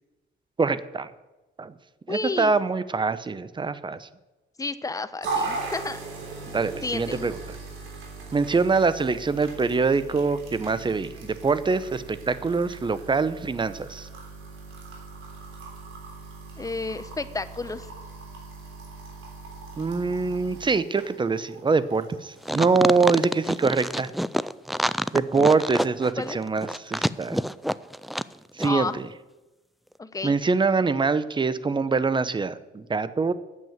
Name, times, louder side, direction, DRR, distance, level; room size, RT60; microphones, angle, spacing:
voice 1, 0.6-1.1 1.6-1.7 2.1-4.1 6.5-7.3 8.3-14.1 19.8-24.1 25.1-27.4 28.6-29.1 30.2-33.3, right 4 dB, 25° right, 14 dB, 0.7 m, -24 dB
voice 2, 2.1-2.5 4.6-6.0 6.8-7.3 16.6-17.9 26.2-26.4 28.6-29.0 30.0-30.4, left 3 dB, 15° left, 12 dB, 0.8 m, -31 dB
sound 1, 5.2-24.0, right 3 dB, 85° right, 3.4 m, -39 dB
sound 2, 22.4-28.3 28.6-28.7, equal, ahead, 0.3 m, -27 dB
9.3 x 7.6 x 9.0 m, 1.1 s
cardioid pair, 90°, 20 cm